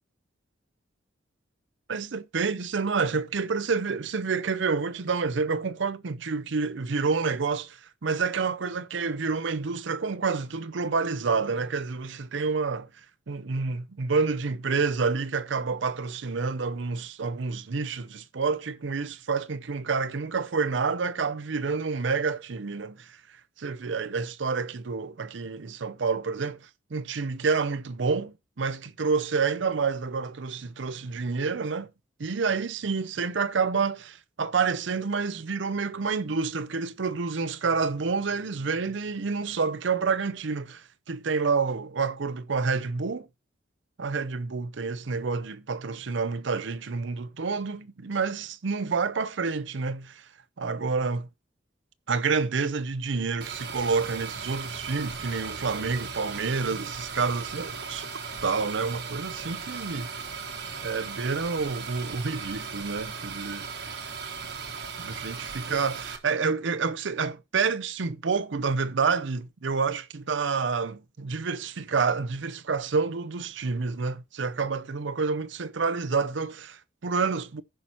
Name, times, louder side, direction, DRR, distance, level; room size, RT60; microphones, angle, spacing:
voice 1, 1.9-12.9 13.3-23.2 23.6-31.9 32.2-43.3 44.0-50.2 50.6-51.3 52.1-58.1 58.4-60.1 60.8-63.7 65.0-77.6, right 4 dB, 70° right, 0.6 m, -28 dB
sound 1, 53.4-66.2, right 5 dB, 55° right, 1.2 m, -37 dB
15.0 x 5.8 x 3.0 m
head